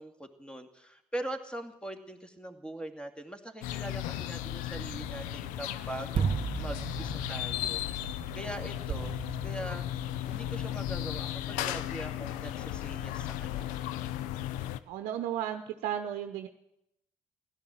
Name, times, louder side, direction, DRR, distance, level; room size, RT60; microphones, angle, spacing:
voice 1, 0.0-8.0 8.4-9.8 10.2-13.8, right 1 dB, 5° left, 6 dB, 2.5 m, -42 dB
sound 1, 3.6-14.8, left 12 dB, 75° left, 0.7 m, -35 dB
sound 2, 4.7-10.1, right 6 dB, 35° right, 0.6 m, -37 dB
voice 2, 14.9-16.5, right 10 dB, 70° right, 7 dB, 0.8 m, -34 dB
16.0 x 11.5 x 7.7 m, 0.83 s
hypercardioid pair, 50°, 13 cm